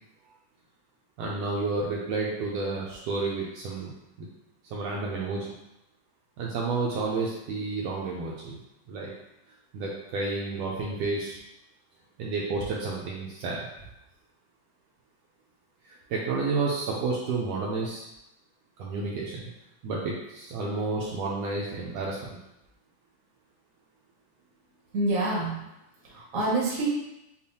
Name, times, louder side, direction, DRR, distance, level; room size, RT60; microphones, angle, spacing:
voice 1, 1.2-3.9 4.2-4.3 4.7-5.5 6.4-8.6 8.9-9.1 9.7-11.4 12.2-13.6 15.9-18.1 18.8-19.5 19.8-22.2, right 3 dB, 80° right, -3 dB, 1.6 m, -30 dB
voice 2, 24.9-25.5 26.0-26.9, right 2 dB, 55° right, -5 dB, 0.9 m, -26 dB
7.0 x 2.4 x 2.7 m, 0.89 s
omnidirectional pair, 3.3 m